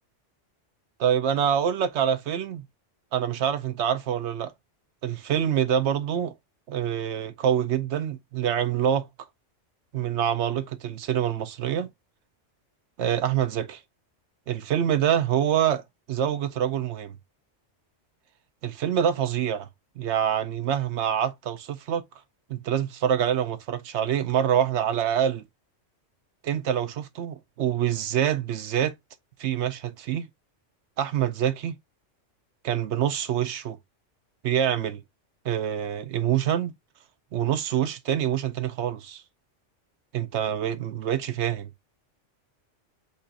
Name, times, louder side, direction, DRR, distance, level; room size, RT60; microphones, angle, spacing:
voice 1, 1.0-2.6 3.1-4.5 5.0-6.3 6.7-9.1 9.9-11.9 13.0-13.8 14.5-17.2 18.6-19.7 20.0-22.0 22.5-25.4 26.4-28.9 29.4-30.3 31.0-31.7 32.6-33.8 34.4-35.0 35.4-36.7 37.3-39.2 40.1-41.7, right 9 dB, 70° right, 0.9 m, -26 dB
5.4 x 2.5 x 3.9 m
omnidirectional pair, 1.2 m